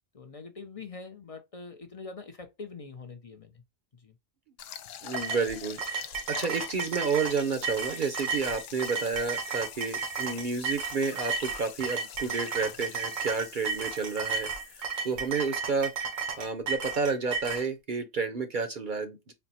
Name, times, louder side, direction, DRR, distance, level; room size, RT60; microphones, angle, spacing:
voice 1, 0.1-3.6 3.9-4.2, left 4 dB, 45° left, 0.4 m, -44 dB
sound 1, 4.6-16.5, left 10 dB, 75° left, 0.9 m, -45 dB
voice 2, 5.0-15.9 16.4-19.3, right 5 dB, 50° right, 0.6 m, -31 dB
sound 2, 5.1-17.7, right 5 dB, 90° right, 1.4 m, -33 dB
4.4 x 2.0 x 4.1 m
omnidirectional pair, 1.4 m